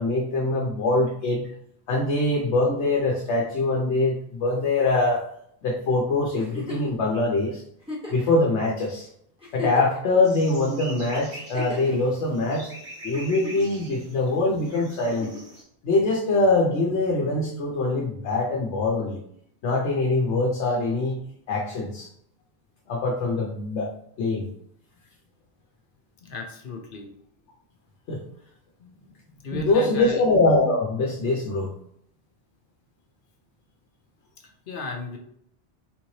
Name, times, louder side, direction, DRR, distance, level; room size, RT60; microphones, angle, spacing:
voice 1, 0.0-1.5 1.9-5.2 5.6-7.6 8.1-9.1 9.5-12.7 13.0-15.3 15.8-19.2 19.6-22.1 22.9-23.9 24.2-24.5 28.1-28.2 29.5-31.7, left 2 dB, 85° left, -1 dB, 1.0 m, -23 dB
Giggle, 6.4-7.0 7.8-8.3 8.9-9.0 9.4-10.2 11.3-12.0 13.1-13.8 15.1-15.5 17.0-17.1, left 3 dB, 5° right, 0.9 m, -36 dB
sound 1, 10.2-15.6, right 1 dB, 70° right, 2.0 m, -43 dB
voice 2, 26.2-27.1 28.8-28.9 29.2-30.2 34.4-35.2, left 3 dB, 55° left, 2 dB, 0.8 m, -35 dB
3.7 x 3.1 x 2.8 m, 0.69 s
omnidirectional pair, 1.1 m